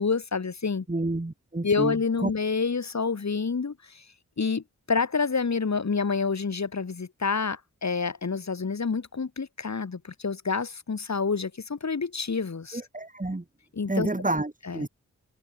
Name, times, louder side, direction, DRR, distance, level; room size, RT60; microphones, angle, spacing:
voice 1, 0.0-0.8 1.6-4.0 4.4-12.8 13.7-14.1 14.7-14.9, left 5 dB, 55° left, 2.6 m, -28 dB
voice 2, 0.9-2.0 2.2-2.3 12.7-13.4 13.9-14.9, right 2 dB, 25° right, 3.7 m, -29 dB
cardioid pair, 40°, 32 cm